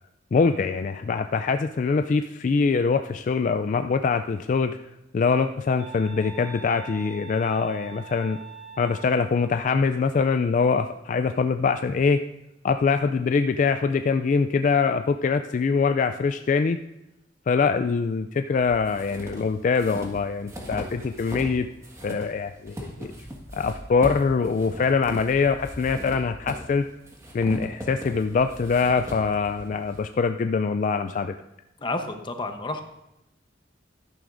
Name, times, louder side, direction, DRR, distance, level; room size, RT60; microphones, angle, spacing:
voice 1, 0.3-4.8 5.1-8.4 8.8-12.2 12.6-16.8 17.5-21.7 22.0-23.1 23.5-26.8 27.3-31.3, left 5 dB, 45° left, 8 dB, 0.3 m, -23 dB
sound 1, 5.8-9.4, right 6 dB, 45° right, 4.0 m, -43 dB
sound 2, 18.5-21.6 21.8-30.0, equal, 15° right, 1.6 m, -39 dB
voice 2, 31.8-32.8, left 2 dB, 25° left, 6 dB, 0.9 m, -30 dB
12.5 x 11.0 x 2.6 m, 0.90 s
head